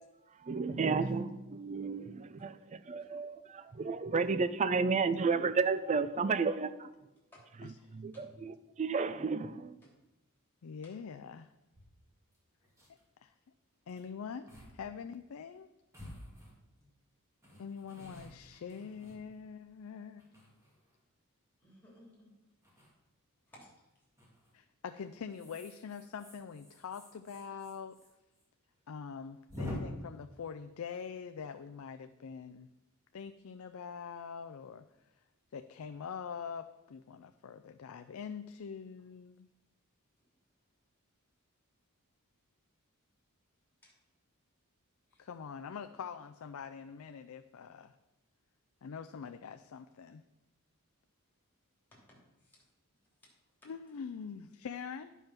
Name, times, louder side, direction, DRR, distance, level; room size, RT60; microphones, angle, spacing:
voice 1, 0.4-6.9 7.6-9.7, right 4 dB, 30° right, 13 dB, 0.4 m, -32 dB
voice 2, 10.6-11.5 13.2-13.3 13.9-15.7 17.6-20.4 24.5-28.0 28.9-32.7 33.1-34.9 35.5-39.5 45.2-48.0 48.8-50.2 53.6-55.2, left 6 dB, 70° left, 8 dB, 0.4 m, -44 dB
sound 1, 11.7-11.8 12.3-12.4 12.6-13.0 13.9-14.0 14.5-14.7 15.0-15.1 15.9-16.9 17.4-19.6 20.2-21.0 22.6-22.9 24.2-24.5 25.3-28.1 28.3-28.4 28.7-28.8 29.5-29.7, left 1 dB, 15° right, 2.1 m, -48 dB
voice 3, 21.6-22.3 23.5-23.7 45.1-45.2 51.9-52.6, left 1 dB, 10° left, -4 dB, 2.9 m, -58 dB
10.5 x 5.4 x 5.8 m, 0.98 s
head